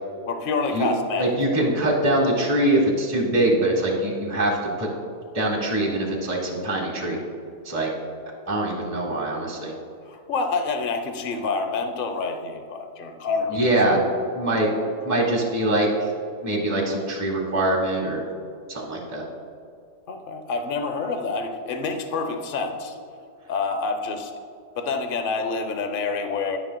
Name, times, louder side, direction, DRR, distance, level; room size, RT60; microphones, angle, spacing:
voice 1, 0.3-1.3 10.1-13.7 20.1-23.0 23.5-24.3 24.8-26.6, left 4 dB, 75° left, 6 dB, 0.5 m, -27 dB
voice 2, 1.2-4.9 5.3-7.2 7.6-7.9 8.5-9.7 13.5-14.0 14.3-14.7 15.0-16.1 16.4-18.2 18.7-19.2, right 1 dB, 10° right, -2 dB, 1.0 m, -23 dB
10.5 x 10.0 x 2.2 m, 2.4 s
omnidirectional pair, 1.8 m